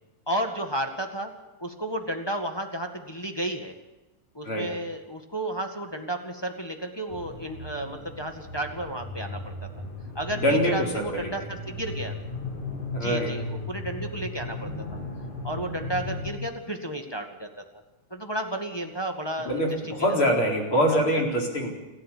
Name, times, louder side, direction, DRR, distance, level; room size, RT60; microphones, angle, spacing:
voice 1, 0.3-1.3 1.6-3.7 4.3-9.5 10.1-12.1 13.0-14.7 15.4-17.5 18.1-20.0 20.9-21.2, right 1 dB, 10° left, 3 dB, 1.3 m, -32 dB
sound 1, 7.1-16.3, left 2 dB, 70° left, 5.7 m, -36 dB
voice 2, 10.3-11.3 12.9-13.3 19.4-21.7, equal, 45° left, 0 dB, 5.0 m, -24 dB
29.0 x 13.5 x 8.6 m, 1.1 s
omnidirectional pair, 3.4 m